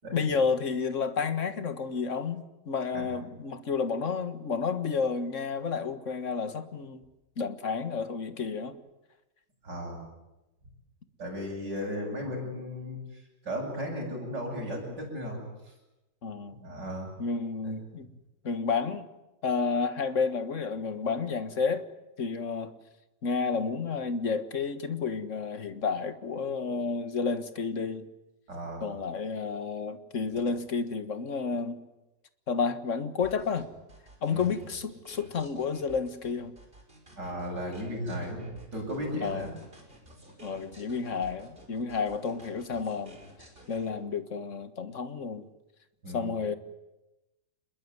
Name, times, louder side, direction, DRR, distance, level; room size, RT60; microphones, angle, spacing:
voice 1, 0.1-7.0 7.4-8.8 16.2-16.6 17.2-18.1 18.4-19.1 19.4-21.8 22.2-22.7 23.2-28.1 28.8-31.8 32.5-33.7 34.2-36.5 39.2-39.5 40.4-43.2 43.7-45.5 46.1-46.6, left 5 dB, 45° left, 10 dB, 1.9 m, -31 dB
voice 2, 9.6-10.0 11.2-15.4 16.5-17.1 17.6-17.7 28.5-28.8 34.3-34.5 37.2-39.5 46.0-46.3, equal, 70° right, -2 dB, 8.7 m, -35 dB
sound 1, 33.2-43.9, equal, 30° right, 5.6 m, -53 dB
27.0 x 22.0 x 9.7 m, 0.99 s
omnidirectional pair, 1.9 m